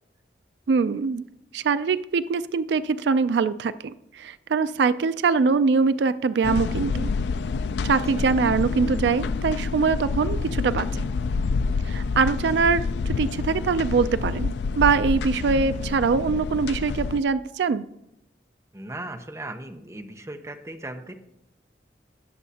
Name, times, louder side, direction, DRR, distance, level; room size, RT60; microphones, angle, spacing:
voice 1, 0.7-1.2 1.5-7.1 7.8-11.1 11.8-17.8, right 5 dB, 80° right, 13 dB, 0.4 m, -23 dB
sound 1, 6.4-17.2, left 4 dB, 80° left, 0.4 m, -28 dB
voice 2, 18.7-21.1, right 1 dB, 15° right, 5 dB, 0.8 m, -37 dB
19.5 x 7.1 x 2.8 m, 0.81 s
head